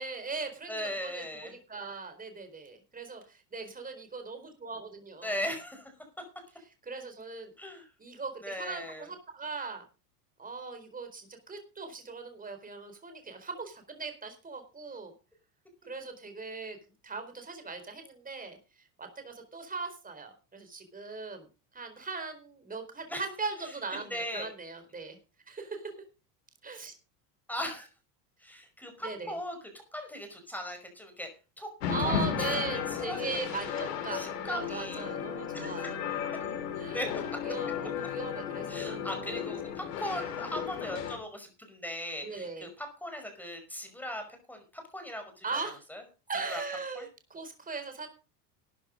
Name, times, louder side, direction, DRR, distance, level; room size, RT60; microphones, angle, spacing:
voice 1, 0.0-5.3 6.9-7.5 8.0-9.8 10.4-15.1 15.9-16.8 17.0-18.6 19.0-21.5 21.7-25.2 25.5-25.9 26.6-26.9 29.0-29.3 31.9-36.0 36.7-37.0 37.4-39.4 40.1-40.2 42.2-42.7 45.4-45.8 46.3-48.2, right 4 dB, 15° right, 7 dB, 4.3 m, -39 dB
voice 2, 0.7-1.5 5.2-5.9 7.6-7.9 8.4-9.1 23.1-23.2 24.0-24.5 27.5-27.9 28.4-29.6 29.9-31.3 31.6-31.7 32.0-32.1 32.4-32.6 32.9-35.1 35.5-35.9 36.9-37.4 38.7-44.2 44.5-45.5 45.9-46.0 46.5-46.6 47.0-47.1, left 1 dB, 5° left, 5 dB, 5.3 m, -38 dB
sound 1, 31.8-41.2, left 8 dB, 80° left, 4.2 m, -34 dB
13.0 x 9.9 x 5.2 m, 0.33 s
supercardioid pair, 105°, 47 cm